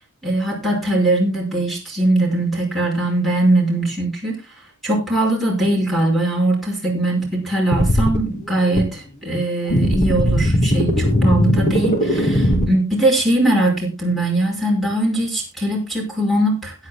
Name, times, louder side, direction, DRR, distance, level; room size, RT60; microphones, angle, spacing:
voice 1, 0.2-4.4 4.8-16.7, right 1 dB, ahead, 0 dB, 5.3 m, -20 dB
sound 1, 7.7-8.2 8.8-8.9 9.7-12.7, equal, 35° left, 2.3 m, -18 dB
21.5 x 9.6 x 2.2 m, 0.25 s
head